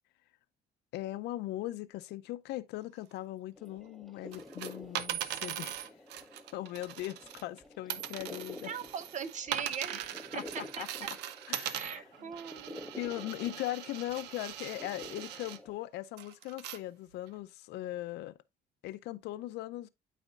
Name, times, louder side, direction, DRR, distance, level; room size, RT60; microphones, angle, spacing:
voice 1, 0.9-5.9 6.5-8.7 10.3-10.4 10.8-10.9 11.5-12.3 12.9-18.4 18.8-19.9, left 15 dB, 80° left, 0.6 m, -39 dB
sound 1, 3.6-15.7, left 1 dB, ahead, 0.9 m, -50 dB
sound 2, 4.3-7.6 7.9-15.6 16.2-16.8 17.3-17.4, right 11 dB, 90° right, 0.7 m, -41 dB
voice 2, 8.6-11.2 11.7-12.9, right 7 dB, 45° right, 0.9 m, -41 dB
12.5 x 4.2 x 2.4 m
cardioid pair, 110°, 17 cm